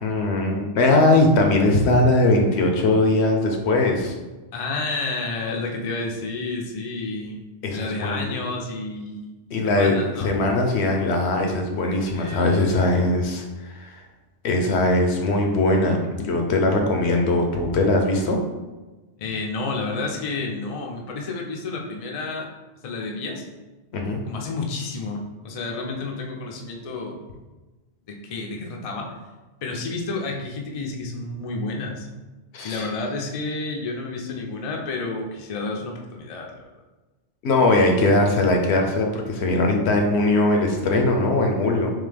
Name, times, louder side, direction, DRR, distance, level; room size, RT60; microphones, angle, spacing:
voice 1, 0.0-4.1 7.6-8.4 9.5-9.9 10.2-13.4 13.8-14.0 14.4-18.4 23.9-24.2 32.5-32.9 37.4-41.9, left 2 dB, 75° left, 2 dB, 0.9 m, -20 dB
voice 2, 4.5-7.4 7.7-9.3 9.6-10.4 12.1-12.7 19.2-22.5 22.8-23.4 24.3-27.2 28.1-29.1 29.6-32.1 32.6-36.7, left 3 dB, 45° left, 1 dB, 0.5 m, -30 dB
3.7 x 2.9 x 3.3 m, 1.2 s
omnidirectional pair, 1.1 m